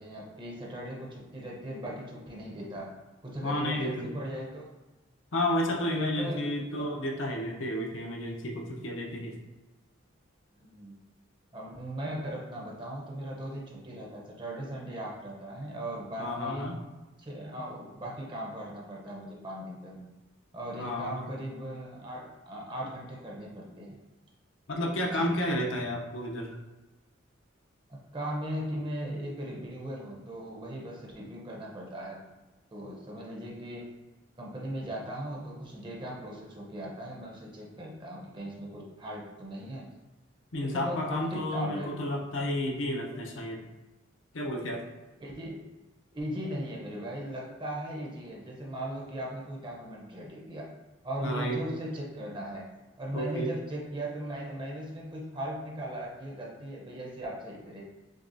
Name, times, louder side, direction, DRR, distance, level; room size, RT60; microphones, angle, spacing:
voice 1, 0.0-2.9 3.2-4.7 6.0-6.5 10.6-10.9 11.5-16.7 17.2-20.0 20.5-23.9 25.1-25.5 27.9-32.2 32.7-33.9 34.4-39.9 40.6-41.9 45.2-45.6 46.1-50.7 51.0-52.7 53.0-57.9, right 1 dB, 25° right, -3 dB, 0.8 m, -38 dB
voice 2, 3.4-4.1 5.3-9.4 16.2-16.8 19.9-20.0 20.8-21.2 24.7-26.5 40.5-43.6 44.3-44.8 51.2-51.6 53.1-53.5, left 1 dB, 70° left, -1 dB, 0.7 m, -31 dB
6.1 x 2.3 x 2.6 m, 1.1 s
head